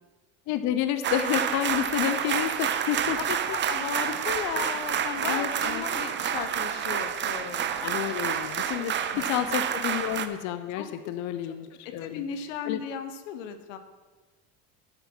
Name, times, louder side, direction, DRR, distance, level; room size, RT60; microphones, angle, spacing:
voice 1, 0.5-3.4 4.6-4.8 5.3-5.9 7.8-12.2 12.6-12.8, left 11 dB, 50° left, 10 dB, 0.7 m, -30 dB
sound 1, 1.0-10.3, right 9 dB, 30° right, 0.6 m, -29 dB
voice 2, 3.7-7.9 8.8-8.9 9.1-9.2 10.8-10.9 11.8-13.8, left 8 dB, 90° left, 9 dB, 0.9 m, -35 dB
8.3 x 7.9 x 4.5 m, 1.3 s
supercardioid pair, 110°, 36 cm